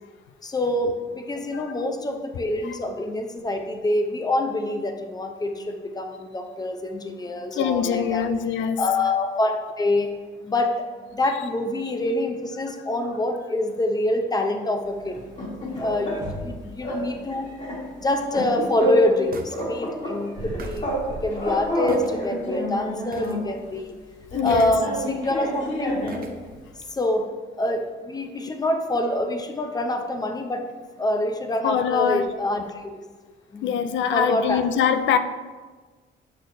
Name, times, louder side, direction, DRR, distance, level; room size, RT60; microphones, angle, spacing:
voice 1, 0.4-8.2 8.8-10.1 10.5-10.8 11.1-15.2 15.8-17.5 18.0-24.0 24.4-26.0 26.9-27.3 27.6-30.7 31.0-32.9 33.5-33.8 34.1-34.6, left 1 dB, 20° left, 0.7 m, -26 dB
voice 2, 7.5-8.8 24.3-24.7 31.6-32.2 33.6-35.2, left 8 dB, 70° left, 0.4 m, -23 dB
sound 1, 15.1-16.5 16.8-17.0 17.3-19.2 19.5-21.1 21.3-23.5 24.3-26.3, equal, 35° left, 1.9 m, -29 dB
sound 2, 18.1-18.2 19.3-19.7 19.9-20.0 20.4-22.1 22.5-22.6 23.1-23.4 23.6-23.9 24.5-25.0 26.1-26.4 26.8-26.9, right 3 dB, 45° right, 0.7 m, -38 dB
6.4 x 6.2 x 2.7 m
cardioid pair, 90°, 20 cm